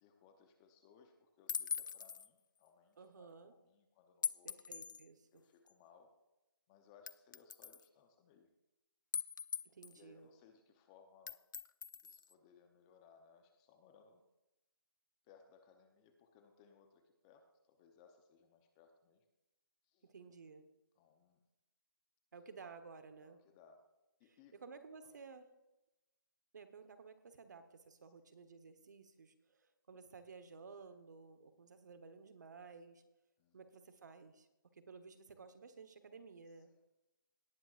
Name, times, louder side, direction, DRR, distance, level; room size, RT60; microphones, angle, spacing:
voice 1, 0.0-4.6 5.3-6.1 6.7-8.5 9.9-11.4 12.0-14.2 15.2-19.2 19.9-20.1 21.0-21.4 23.2-23.8 24.2-24.6 25.0-25.1 33.4-33.6, left 6 dB, 15° left, 6 dB, 0.8 m, -65 dB
sound 1, 1.5-2.3 4.2-5.1 5.7-5.8 7.1-7.8 9.1-10.0 11.3-12.3, left 6 dB, 60° left, 0.4 m, -41 dB
voice 2, 3.0-3.5 4.4-5.4 9.6-10.3 20.0-20.7 22.3-23.4 24.2-25.5 26.5-33.0 33.5-34.5 34.7-36.7, right 5 dB, 50° right, 9 dB, 1.2 m, -55 dB
18.5 x 9.1 x 2.5 m, 0.96 s
hypercardioid pair, 160°, 12 cm